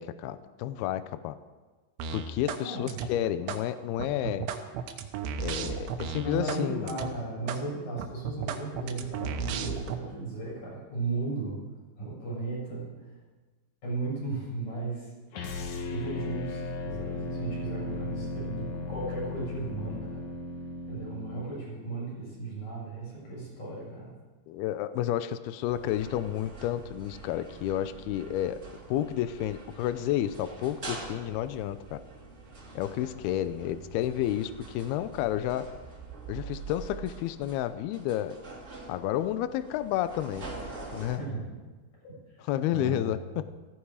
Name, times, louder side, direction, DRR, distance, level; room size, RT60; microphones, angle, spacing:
voice 1, 0.0-1.4 2.1-4.5 5.4-6.9 24.5-28.6 28.9-32.0 32.8-35.7 36.3-38.4 38.9-40.5 40.9-41.2 42.5-43.5, left 12 dB, 90° left, 12 dB, 2.2 m, -31 dB
sound 1, 2.0-2.6 2.9-3.6 4.0-6.6 6.9-7.1 7.5-7.6 8.0-10.0, right 7 dB, 90° right, 3.5 m, -34 dB
voice 2, 2.6-3.0 6.2-11.6 12.0-13.1 13.8-15.1 15.9-20.2 20.8-24.1 41.2-41.4 42.7-43.1, right 3 dB, 40° left, -5 dB, 8.4 m, -35 dB
sound 2, 15.3-21.5, left 2 dB, 65° left, 1.8 m, -36 dB
sound 3, 25.7-41.2, right 3 dB, 25° right, 1.5 m, -45 dB
16.5 x 16.0 x 4.9 m, 1.3 s
omnidirectional pair, 5.3 m